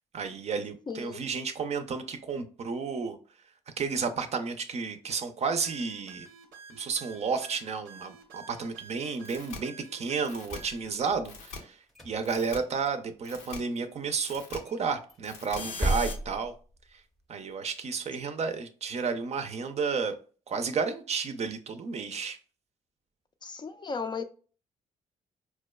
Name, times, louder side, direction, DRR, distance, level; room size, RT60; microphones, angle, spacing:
voice 1, 0.1-3.2 3.8-6.3 6.7-11.8 12.0-16.5 17.3-20.1 20.5-22.4, right 5 dB, 45° right, 0.5 m, -32 dB
voice 2, 0.9-1.2 23.4-24.2, left 5 dB, 30° left, 0.4 m, -35 dB
sound 1, 5.6-10.9, right 6 dB, 85° right, 0.6 m, -50 dB
sound 2, 9.2-9.6 10.2-10.6 11.2-11.6 12.2-12.6 13.2-13.6 14.2-14.6 15.2-16.1, left 4 dB, 85° left, 0.6 m, -41 dB
sound 3, 10.4-11.5 11.9-13.0 13.3-13.4 13.8-13.9 14.2-14.3 14.7-17.2, right 1 dB, ahead, 0.7 m, -35 dB
4.4 x 2.2 x 2.2 m
hypercardioid pair, 55°, 15 cm